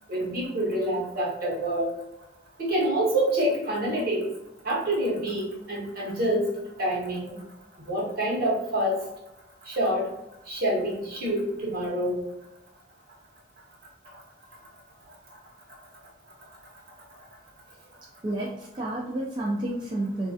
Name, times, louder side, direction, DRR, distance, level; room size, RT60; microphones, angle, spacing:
voice 1, 0.1-1.9 2.6-4.2 4.6-6.4 6.8-7.4 7.9-9.0 9.7-10.1 10.5-12.2, right 1 dB, 55° right, -3 dB, 0.9 m, -27 dB
voice 2, 18.2-20.3, right 1 dB, 25° right, -4 dB, 0.3 m, -30 dB
3.1 x 2.3 x 2.6 m, 0.89 s
head